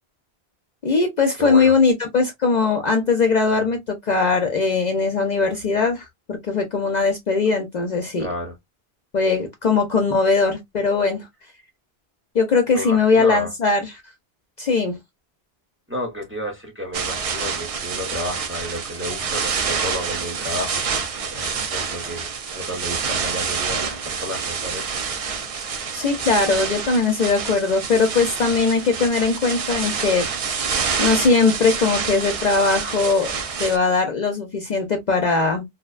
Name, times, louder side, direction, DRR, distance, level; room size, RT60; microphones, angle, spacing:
voice 1, 0.8-8.3 9.1-11.3 12.3-14.0 14.6-15.0 25.9-30.3 31.0-33.3 33.6-35.7, left 4 dB, 50° left, 0.6 m, -20 dB
voice 2, 1.4-1.7 8.2-8.6 12.7-13.5 15.9-20.8 21.3-24.9, left 1 dB, 15° right, 0.7 m, -31 dB
sound 1, 16.9-33.8, right 6 dB, 55° right, 0.4 m, -27 dB
2.7 x 2.1 x 2.3 m
omnidirectional pair, 1.1 m